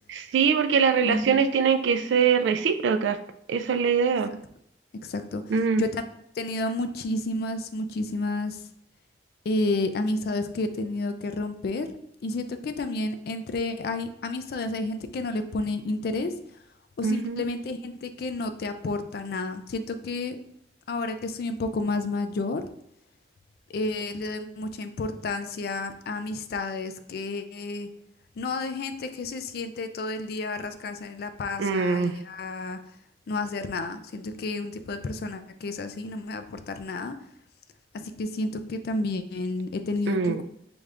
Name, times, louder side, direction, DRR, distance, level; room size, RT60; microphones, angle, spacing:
voice 1, 0.1-3.2 3.5-4.4 5.5-5.8 17.0-17.4 31.6-32.1 40.1-40.4, right 6 dB, 80° right, 9 dB, 0.3 m, -23 dB
voice 2, 1.0-1.4 5.0-5.4 5.8-6.0 6.4-8.6 9.5-11.9 12.2-16.3 17.0-20.4 20.9-22.6 23.7-27.9 28.4-32.8 33.3-37.2 37.9-40.4, left 2 dB, 55° left, 10 dB, 0.3 m, -31 dB
5.1 x 2.4 x 3.2 m, 0.72 s
head